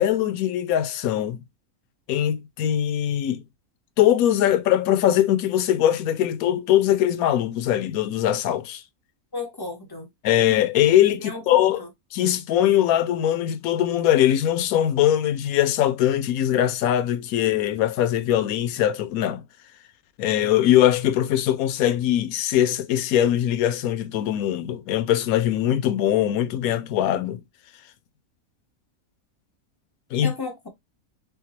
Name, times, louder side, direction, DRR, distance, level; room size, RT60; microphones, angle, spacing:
voice 1, 0.0-1.4 2.1-3.4 4.0-8.8 10.2-11.8 12.1-19.4 20.2-27.4 30.1-30.3, left 11 dB, 75° left, 1.0 m, -21 dB
voice 2, 9.3-10.1 11.2-11.9 30.2-30.7, left 3 dB, 20° left, 0.7 m, -34 dB
3.6 x 3.5 x 3.0 m
omnidirectional pair, 1.6 m